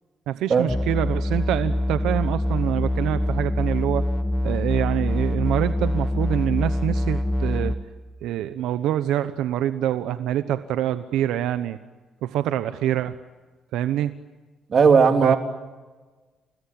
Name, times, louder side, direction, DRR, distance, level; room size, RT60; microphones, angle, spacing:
voice 1, 0.3-4.1 4.4-7.8 8.2-11.8 12.2-13.2 13.7-14.2 15.2-15.3, right 12 dB, 90° right, 11 dB, 0.9 m, -25 dB
sound 1, 0.7-7.7, left 1 dB, 10° left, 2.3 m, -24 dB
voice 2, 14.7-15.4, right 5 dB, 50° right, 5 dB, 3.3 m, -16 dB
29.5 x 20.5 x 8.8 m, 1.3 s
cardioid pair, 90°, 0 cm